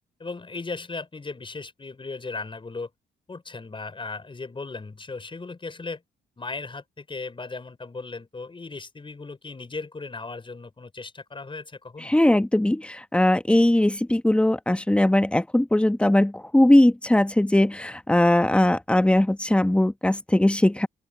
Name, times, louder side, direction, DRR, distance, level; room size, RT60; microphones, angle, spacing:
voice 1, 0.2-2.9 3.3-6.0 6.4-12.1, left 3 dB, 25° left, 5.6 m, -37 dB
voice 2, 12.0-20.9, left 1 dB, 5° left, 1.1 m, -20 dB
open air
cardioid pair, 90°, 20 cm